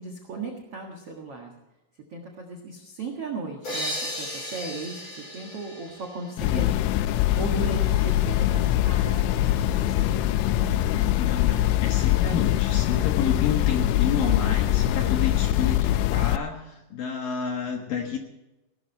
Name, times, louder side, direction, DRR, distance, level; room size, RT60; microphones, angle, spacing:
voice 1, 0.0-1.5 2.1-7.0 7.3-11.1, right 3 dB, 85° right, 1 dB, 1.3 m, -37 dB
sound 1, 3.6-7.2, equal, 25° left, 5.5 m, -36 dB
sound 2, 6.4-16.4, left 13 dB, 80° left, 2.9 m, -23 dB
voice 2, 6.5-6.8 11.2-15.8 16.1-18.2, left 7 dB, 65° left, 2 dB, 2.3 m, -30 dB
18.0 x 12.5 x 4.6 m, 0.98 s
omnidirectional pair, 5.6 m